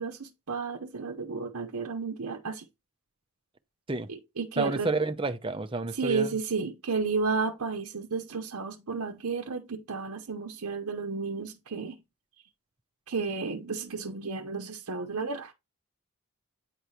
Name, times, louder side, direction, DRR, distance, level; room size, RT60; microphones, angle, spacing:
voice 1, 0.0-2.7 4.1-4.9 5.9-12.0 13.1-15.5, right 4 dB, 85° right, 0.8 m, -32 dB
voice 2, 4.6-6.4, right 3 dB, 25° right, 0.7 m, -30 dB
9.3 x 3.2 x 5.6 m
head